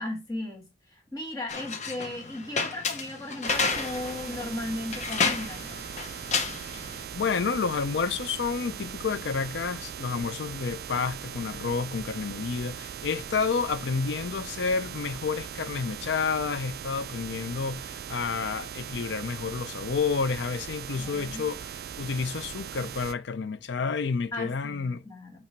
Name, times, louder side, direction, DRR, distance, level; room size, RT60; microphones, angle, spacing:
voice 1, 0.0-5.8 21.0-21.5 24.3-25.3, left 2 dB, 20° left, 1.9 m, -36 dB
sound 1, 1.5-7.0, left 5 dB, 40° left, 0.7 m, -31 dB
sound 2, 3.5-23.1, right 8 dB, 50° right, 0.3 m, -40 dB
voice 2, 7.1-25.0, left 5 dB, 65° left, 0.4 m, -30 dB
8.5 x 3.0 x 4.5 m
head